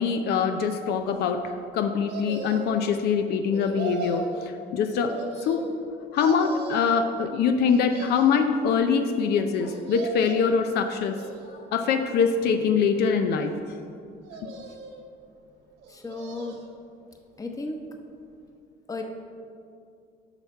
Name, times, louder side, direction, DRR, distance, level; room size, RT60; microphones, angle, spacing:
voice 1, 0.0-5.1 5.4-5.7 6.1-11.1 11.4-13.5, left 6 dB, 75° left, 6 dB, 0.6 m, -24 dB
sound 1, 2.1-2.9 3.5-4.3 5.1-5.9 6.2-7.0 7.6-8.5 9.6-10.6 11.1-11.8 12.4-13.2 14.2-15.1 15.8-16.7 17.1-17.2, right 3 dB, 75° right, 1.2 m, -38 dB
voice 2, 15.9-16.6 17.4-17.8 18.9-19.0, left 3 dB, 20° left, 3 dB, 1.0 m, -34 dB
8.1 x 5.9 x 5.5 m, 2.4 s
cardioid pair, 110°, 17 cm